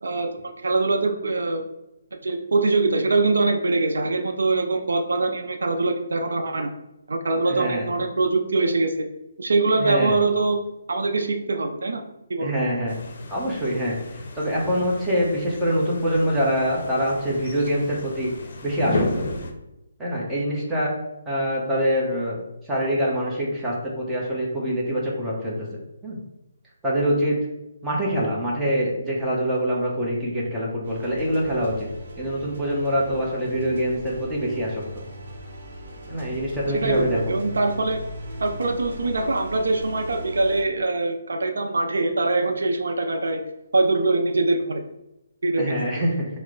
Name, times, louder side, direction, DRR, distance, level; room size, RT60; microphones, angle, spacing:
voice 1, 0.0-1.6 2.2-6.7 7.1-9.1 9.4-10.6 10.9-12.0 12.3-12.5 36.7-38.0 38.4-43.4 43.7-44.8 45.4-45.8, right 3 dB, 80° right, 5 dB, 0.3 m, -23 dB
voice 2, 7.5-7.9 9.8-10.2 12.4-13.0 13.3-14.0 14.4-18.3 18.6-19.3 20.0-20.9 21.3-22.4 22.7-25.7 26.0-26.2 26.8-27.4 27.8-31.9 32.2-34.8 36.1-37.2 45.5-46.3, equal, 5° right, -6 dB, 0.8 m, -24 dB
sound 1, 12.9-19.5, left 2 dB, 55° left, 0.6 m, -33 dB
sound 2, 30.8-40.6, equal, 60° right, 0.7 m, -38 dB
2.9 x 2.0 x 3.7 m, 0.92 s
hypercardioid pair, 155°, 0 cm